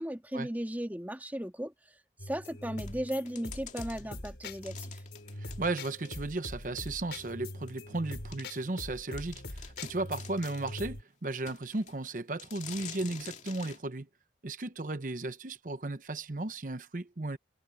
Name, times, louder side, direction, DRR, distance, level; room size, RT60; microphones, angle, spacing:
voice 1, 0.0-1.7 2.2-5.0, equal, 10° right, 2.5 m, -36 dB
sound 1, 2.2-11.0, left 1 dB, 80° left, 4.6 m, -43 dB
sound 2, 2.8-6.4 6.9-7.0 7.7-7.8 8.3-8.5 8.9-9.0 9.2-10.8 11.5-12.0 12.4-13.8, left 8 dB, 40° left, 2.5 m, -48 dB
voice 2, 5.4-14.1 14.4-17.4, right 2 dB, 50° right, 0.8 m, -35 dB
head